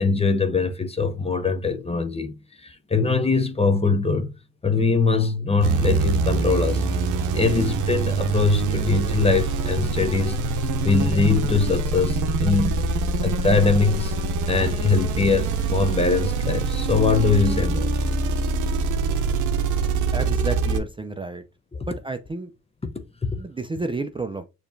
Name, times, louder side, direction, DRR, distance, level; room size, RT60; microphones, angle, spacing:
voice 1, 0.0-2.3 2.6-4.3 4.6-6.8 7.3-10.4 10.8-12.8 13.2-14.1 14.5-17.9 21.7-21.9 23.2-23.4, left 4 dB, 20° left, 0.7 m, -22 dB
sound 1, 5.6-20.8, right 3 dB, 80° right, 0.7 m, -24 dB
voice 2, 20.1-21.4 21.8-22.5 23.4-24.4, right 3 dB, 15° right, 0.5 m, -30 dB
6.7 x 3.0 x 2.6 m
cardioid pair, 90°, 30 cm